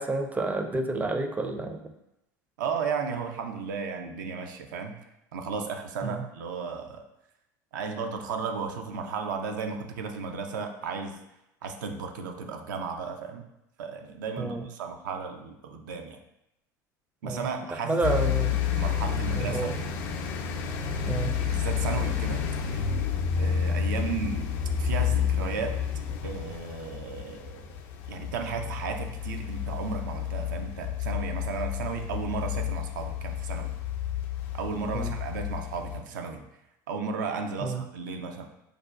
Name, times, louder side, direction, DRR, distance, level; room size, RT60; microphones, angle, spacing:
voice 1, 0.0-1.8 6.0-6.2 14.4-14.6 17.2-17.5 17.9-18.6 19.4-19.7 21.1-21.3 34.9-35.1 37.6-37.8, right 3 dB, 15° right, 5 dB, 0.4 m, -29 dB
voice 2, 2.6-5.0 5.3-7.1 7.7-11.2 11.6-13.5 13.8-16.2 17.2-18.3 18.7-19.8 21.5-22.9 23.4-24.5 24.8-25.8 26.2-27.6 28.1-33.7 34.5-36.4 36.9-38.5, right 5 dB, 80° right, 5 dB, 0.4 m, -34 dB
sound 1, 18.0-36.0, left 8 dB, 65° left, 0.4 m, -30 dB
4.8 x 2.2 x 2.4 m, 0.87 s
hypercardioid pair, 80°, 10 cm